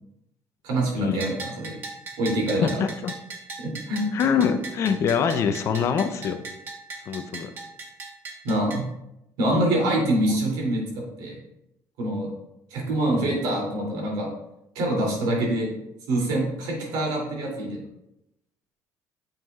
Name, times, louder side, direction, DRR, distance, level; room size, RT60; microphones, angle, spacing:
voice 1, 0.6-1.8 2.2-2.7 3.6-4.1 8.4-8.8 9.4-10.8 11.2-11.4 12.0-12.3 12.7-14.3 14.7-15.7 16.1-17.8, right 1 dB, 90° right, -1 dB, 2.9 m, -25 dB
Bell, 1.2-8.8, right 3 dB, 35° right, 1.2 m, -39 dB
voice 2, 2.6-3.1 4.1-6.4 7.1-7.5 10.2-10.4 13.1-13.4, left 7 dB, 45° left, 8 dB, 0.6 m, -25 dB
9.3 x 7.2 x 2.4 m, 0.86 s
cardioid pair, 155°, 7 cm